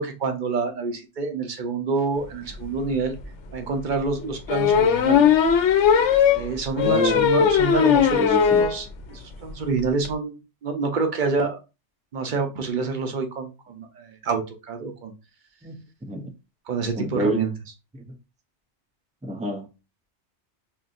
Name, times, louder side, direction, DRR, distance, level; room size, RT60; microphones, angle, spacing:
voice 1, 0.0-3.1 3.5-5.3 6.3-10.3 10.6-11.6 12.1-14.4 14.7-15.1 16.7-17.5, right 4 dB, 45° right, 0.9 m, -27 dB
sound 1, 2.7-2.8 3.2-3.3 4.5-8.8 9.2-9.3 9.5-9.6 9.8-10.1, left 8 dB, 85° left, 0.9 m, -18 dB
voice 2, 6.8-7.5 8.1-8.7 15.6-16.3 17.0-17.4 19.2-19.7, right 1 dB, 10° right, 0.3 m, -28 dB
5.5 x 2.6 x 2.5 m
omnidirectional pair, 1.2 m